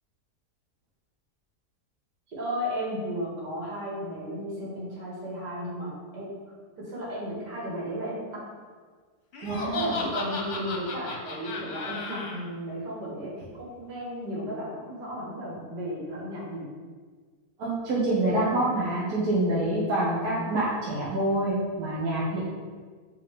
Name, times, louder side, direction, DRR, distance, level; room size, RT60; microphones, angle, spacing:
voice 1, 2.3-6.4 6.8-8.4 9.5-16.7, equal, 80° right, -5 dB, 2.4 m, -34 dB
Laughter, 9.3-12.4, left 3 dB, 55° left, 1.1 m, -34 dB
voice 2, 9.4-10.0 17.6-22.4, right 1 dB, 65° right, -7 dB, 1.7 m, -26 dB
8.3 x 3.9 x 3.7 m, 1.5 s
omnidirectional pair, 1.7 m